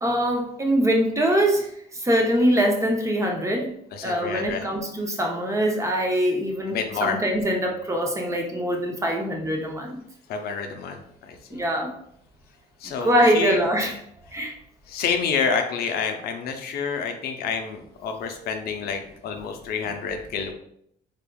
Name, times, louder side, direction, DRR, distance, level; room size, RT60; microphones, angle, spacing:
voice 1, 0.0-3.7 4.0-10.0 11.5-11.9 13.0-14.0 14.3-14.5, equal, 15° right, 1 dB, 0.7 m, -23 dB
voice 2, 3.9-4.6 6.7-7.2 10.3-11.0 12.8-13.6 14.9-20.5, left 6 dB, 65° left, 5 dB, 0.6 m, -28 dB
3.5 x 3.4 x 2.3 m, 0.70 s
cardioid pair, 110°, 17 cm